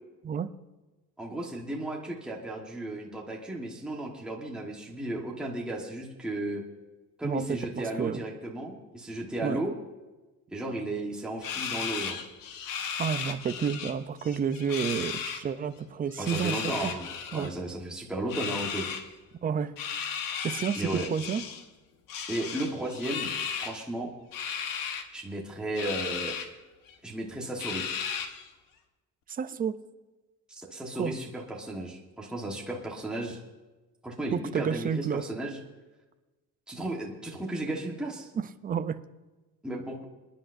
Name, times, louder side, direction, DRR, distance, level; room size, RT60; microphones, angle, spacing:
voice 1, 1.2-6.6 7.2-9.7 10.5-12.2 16.2-18.9 20.8-21.1 22.3-23.3 23.6-24.1 25.1-26.4 27.0-27.9 30.5-33.4 34.0-35.6 36.7-38.3 39.6-40.0, right 1 dB, 5° right, -2 dB, 1.3 m, -34 dB
voice 2, 7.2-7.6 8.0-8.2 9.4-9.6 13.0-16.9 17.3-17.5 19.4-19.7 20.4-21.4 29.3-29.8 31.0-31.1 34.3-35.2 38.6-39.0, right 7 dB, 25° right, 11 dB, 0.5 m, -30 dB
sound 1, 11.4-13.9 14.2-15.4 16.1-17.5 18.3-19.0 19.8-21.6 22.1-23.8 24.3-25.0 25.8-26.5 26.9-27.0 27.6-28.5, left 7 dB, 85° left, 1.2 m, -35 dB
27.5 x 10.0 x 2.6 m, 1.2 s
cardioid pair, 170°, 33 cm